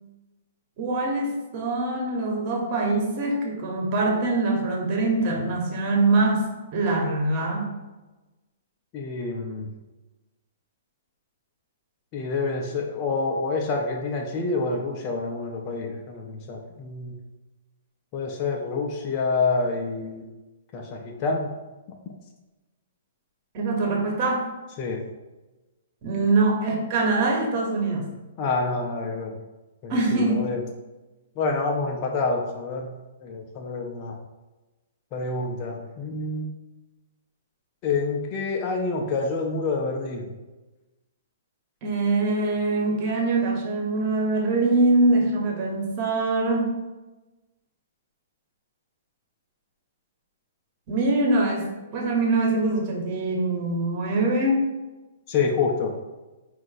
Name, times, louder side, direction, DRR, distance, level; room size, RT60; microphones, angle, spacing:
voice 1, 0.8-6.5 6.7-7.7 23.5-24.4 26.0-28.1 29.9-30.4 41.8-46.7 50.9-54.6, right 2 dB, 40° right, 0 dB, 1.1 m, -23 dB
voice 2, 8.9-9.7 12.1-17.2 18.1-20.3 20.7-21.5 24.8-25.0 28.4-29.4 29.8-30.6 31.4-32.9 33.2-34.2 35.1-36.5 37.8-40.3 55.3-55.9, left 3 dB, 35° left, 1 dB, 0.6 m, -27 dB
4.3 x 2.4 x 4.0 m, 1.1 s
hypercardioid pair, 120°, 0 cm